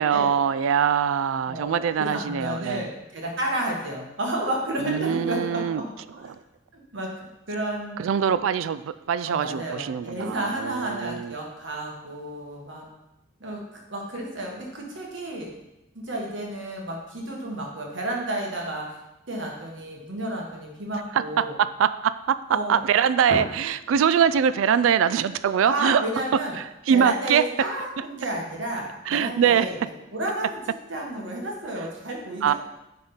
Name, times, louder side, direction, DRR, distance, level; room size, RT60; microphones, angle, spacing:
voice 1, 0.0-2.9 4.8-5.8 6.2-6.4 8.0-11.3 21.2-26.0 26.9-27.4 29.1-29.7 32.4-32.5, right 8 dB, 85° right, 15 dB, 0.3 m, -23 dB
voice 2, 1.5-5.8 6.1-6.3 6.7-7.1 7.5-8.0 9.3-12.8 13.4-15.5 15.9-19.0 19.3-21.6 22.5-22.9 23.3-23.4 25.6-26.5 26.9-29.7 30.1-30.6 30.9-32.5, right 1 dB, 70° right, -1 dB, 1.5 m, -31 dB
9.8 x 3.7 x 3.9 m, 0.93 s
head